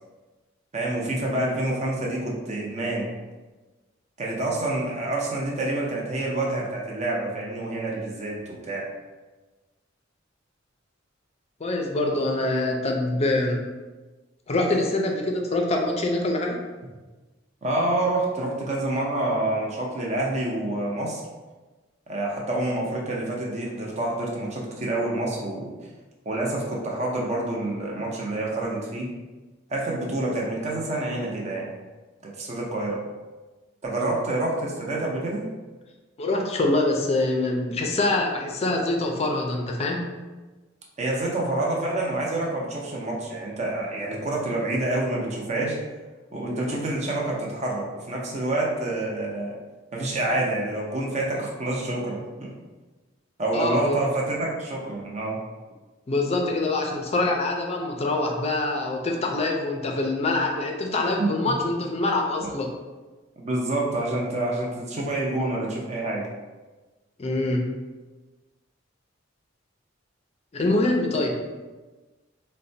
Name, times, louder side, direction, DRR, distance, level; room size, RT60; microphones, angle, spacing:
voice 1, 0.7-3.1 4.2-8.8 17.6-21.2 22.1-25.7 26.2-29.1 29.7-31.7 32.2-33.0 33.8-35.5 41.0-45.8 46.3-49.6 49.9-52.5 53.4-55.4 61.2-61.5 62.4-62.5 63.4-66.2, right 2 dB, 35° right, -3 dB, 0.6 m, -27 dB
voice 2, 11.6-13.6 14.5-16.6 36.2-40.1 53.5-54.0 56.1-62.7 67.2-67.7 70.5-71.4, left 2 dB, 30° left, 1 dB, 0.4 m, -25 dB
4.1 x 2.1 x 2.6 m, 1.2 s
head